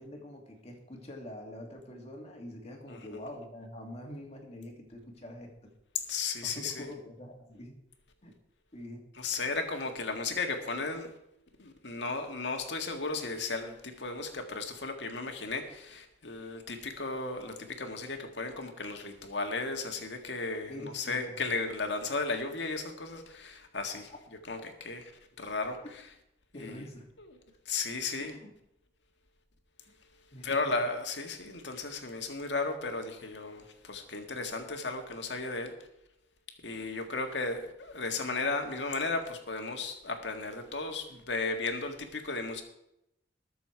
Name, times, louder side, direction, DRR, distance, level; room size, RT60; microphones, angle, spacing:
voice 1, 0.0-5.7 6.4-7.8 8.2-8.3 8.7-9.0 20.6-21.4 26.5-27.1 28.2-28.5 30.3-30.7, left 1 dB, 35° left, 2 dB, 2.4 m, -45 dB
voice 2, 2.9-3.2 6.1-6.9 9.2-11.1 11.6-24.1 24.5-25.0 25.4-25.8 26.5-26.8 27.2-27.3 27.7-28.4 30.4-35.7 36.6-42.6, left 3 dB, 75° left, 4 dB, 1.8 m, -35 dB
20.5 x 6.9 x 4.6 m, 0.84 s
head